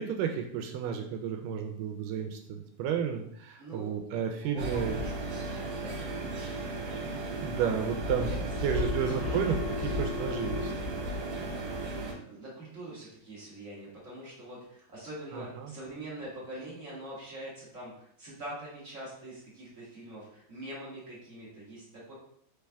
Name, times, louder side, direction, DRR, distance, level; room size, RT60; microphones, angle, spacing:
voice 1, 0.0-4.9 7.4-8.3 8.6-9.6 9.8-10.7 15.3-15.7, right 8 dB, 80° right, 4 dB, 2.1 m, -32 dB
voice 2, 3.6-4.0 4.4-5.1 5.5-6.1 8.1-9.6 9.9-10.2 12.2-22.1, right 1 dB, 45° right, -7 dB, 1.0 m, -44 dB
sound 1, 4.6-12.1, right 1 dB, 65° right, 2.1 m, -34 dB
Telephone, 8.7-10.7, left 6 dB, 85° left, 2.3 m, -37 dB
4.7 x 3.3 x 3.4 m, 0.69 s
omnidirectional pair, 3.9 m